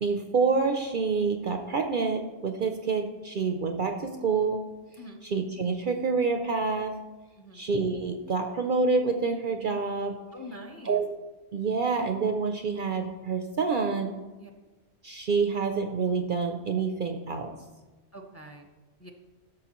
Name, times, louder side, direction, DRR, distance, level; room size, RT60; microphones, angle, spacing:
voice 1, 0.0-4.6 5.2-7.0 7.5-10.2 10.8-11.1 11.5-14.1 15.0-17.5, right 4 dB, 55° right, 5 dB, 0.6 m, -27 dB
voice 2, 10.3-11.0 14.4-14.5 18.1-18.7 19.0-19.1, equal, 15° left, 3 dB, 0.6 m, -44 dB
14.0 x 6.5 x 3.0 m, 1.2 s
omnidirectional pair, 1.2 m